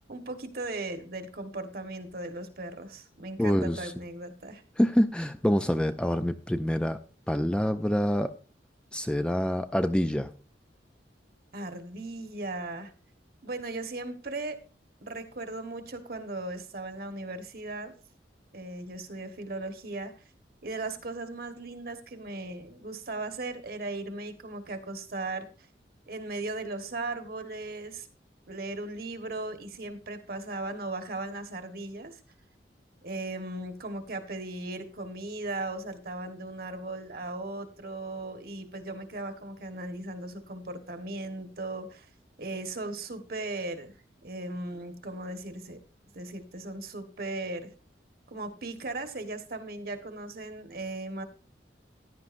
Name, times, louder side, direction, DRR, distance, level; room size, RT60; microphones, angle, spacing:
voice 1, 0.1-4.6 11.5-12.9 13.4-14.6 15.0-17.9 18.5-20.1 20.6-25.5 26.1-28.1 28.5-32.2 33.0-42.1 42.4-43.9 44.2-45.8 46.1-47.7 48.3-51.2, right 2 dB, 55° right, 7 dB, 1.4 m, -37 dB
voice 2, 3.4-3.9 4.8-7.0 7.3-8.3 8.9-10.3, equal, 5° left, 9 dB, 0.4 m, -26 dB
15.5 x 10.5 x 2.6 m, 0.36 s
head